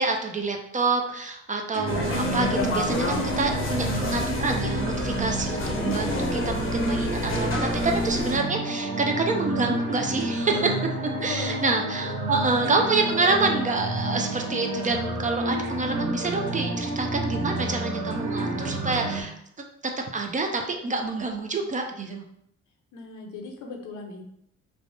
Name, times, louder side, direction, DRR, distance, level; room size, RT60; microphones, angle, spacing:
voice 1, 0.0-10.7 11.2-19.7 20.1-22.2, right 3 dB, 25° right, 3 dB, 0.4 m, -27 dB
sound 1, 1.7-19.2, right 2 dB, 80° right, 0.7 m, -30 dB
sound 2, 1.9-8.4, left 2 dB, 45° left, 0.6 m, -29 dB
voice 2, 11.0-12.8 22.9-24.2, left 4 dB, 75° left, 2 dB, 0.7 m, -39 dB
3.3 x 2.0 x 2.6 m, 0.71 s
cardioid pair, 90°, 30 cm